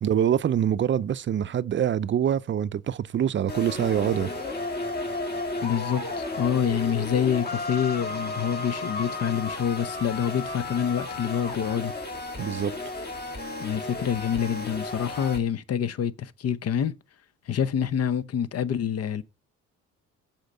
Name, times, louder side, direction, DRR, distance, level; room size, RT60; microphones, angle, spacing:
voice 1, 0.0-4.3 12.4-12.7, right 9 dB, 40° right, 0.5 m, -25 dB
sound 1, 3.5-15.4, left 2 dB, 30° left, 2.1 m, -33 dB
voice 2, 5.6-11.9 13.6-16.9 17.5-19.2, left 8 dB, 55° left, 0.8 m, -27 dB
7.9 x 4.4 x 6.5 m
cardioid pair, 90°, 30 cm